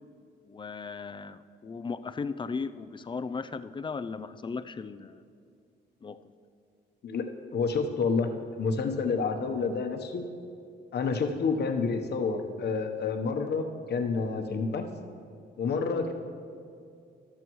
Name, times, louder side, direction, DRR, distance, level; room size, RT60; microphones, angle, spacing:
voice 1, 0.5-5.2 6.0-6.2, left 4 dB, 25° left, 12 dB, 0.4 m, -36 dB
voice 2, 7.5-8.3 8.6-10.2 10.9-14.8 15.6-16.1, left 4 dB, 55° left, 5 dB, 1.1 m, -29 dB
20.5 x 6.9 x 3.1 m, 2.5 s
cardioid pair, 90°, 20 cm